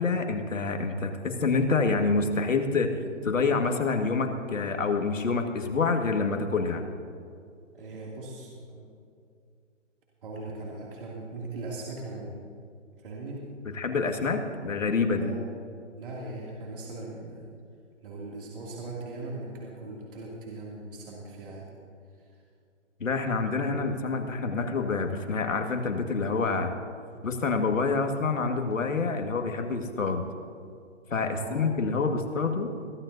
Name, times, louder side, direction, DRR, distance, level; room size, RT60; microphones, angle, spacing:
voice 1, 0.0-2.9 3.2-6.9 13.7-15.3 23.0-26.7 27.2-30.2 31.1-32.7, left 4 dB, 90° left, 4 dB, 1.8 m, -27 dB
voice 2, 7.7-8.9 10.2-12.3 13.0-13.5 15.1-15.4 16.0-17.5 18.0-21.6 22.2-22.3 31.3-31.7, right 2 dB, 45° right, -4 dB, 2.5 m, -39 dB
22.5 x 13.5 x 2.7 m, 2.4 s
hypercardioid pair, 160°, 38 cm